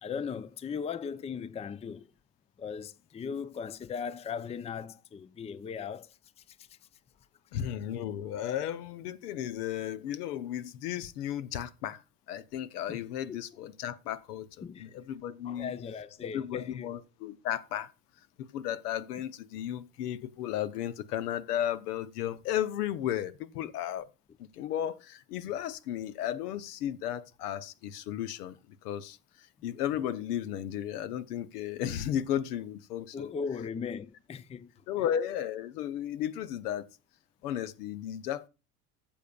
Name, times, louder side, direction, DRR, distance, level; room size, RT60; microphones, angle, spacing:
voice 1, 0.0-2.1 2.6-6.2 6.5-6.8 12.9-13.0 13.3-13.4 14.6-14.9 15.4-16.9 33.1-34.7, left 6 dB, 15° left, 0.5 m, -38 dB
voice 2, 7.5-12.0 12.3-14.5 14.8-15.7 16.2-17.9 18.5-24.1 24.4-28.6 28.8-29.2 29.6-33.3 34.9-36.9 37.4-38.5, left 10 dB, 75° left, 0.9 m, -34 dB
15.0 x 7.1 x 2.3 m
hypercardioid pair, 65°, 47 cm